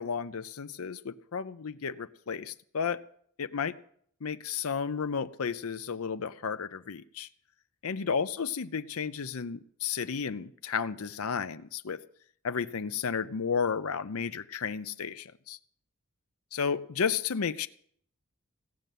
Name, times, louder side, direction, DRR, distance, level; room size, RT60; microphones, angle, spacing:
voice 1, 0.0-3.0 3.4-3.8 4.2-7.3 7.8-12.0 12.4-15.6 16.5-17.7, left 6 dB, 75° left, 11 dB, 0.6 m, -33 dB
16.5 x 6.7 x 9.2 m, 0.62 s
head